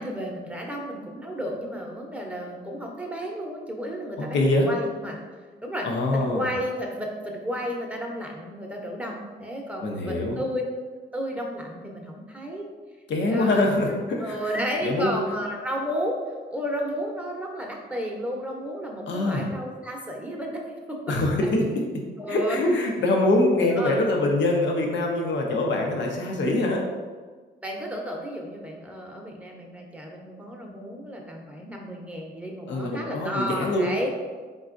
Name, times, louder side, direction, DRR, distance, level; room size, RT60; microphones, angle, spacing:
voice 1, 0.0-5.2 5.6-5.9 6.1-10.6 11.1-12.7 13.3-13.7 14.2-21.0 22.2-22.6 23.8-24.0 27.6-34.1, equal, 5° right, 0 dB, 0.8 m, -32 dB
voice 2, 4.2-4.7 5.8-6.5 9.8-10.4 13.1-14.4 14.8-15.1 19.1-19.5 21.1-21.8 22.3-26.8 32.7-33.9, left 2 dB, 75° left, 1 dB, 0.7 m, -24 dB
4.1 x 3.8 x 2.5 m, 1.4 s
cardioid pair, 80°, 19 cm